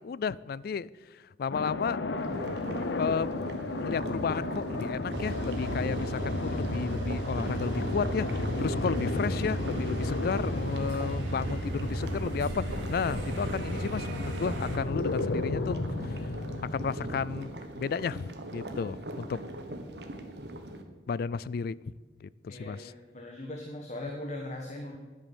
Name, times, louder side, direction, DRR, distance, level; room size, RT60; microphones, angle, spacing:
voice 1, 0.0-2.0 3.0-3.3 3.8-16.3 16.7-19.4 21.1-21.8 22.2-22.9, left 6 dB, 55° left, 0.3 m, -33 dB
sound 1, 1.5-17.2, left 2 dB, 75° left, 0.8 m, -34 dB
sound 2, 2.2-20.8, right 1 dB, 65° right, 1.3 m, -41 dB
sound 3, 5.1-14.8, right 1 dB, 90° right, 2.6 m, -35 dB
voice 2, 22.5-25.0, left 1 dB, 40° left, 1.3 m, -39 dB
10.5 x 9.3 x 7.1 m
head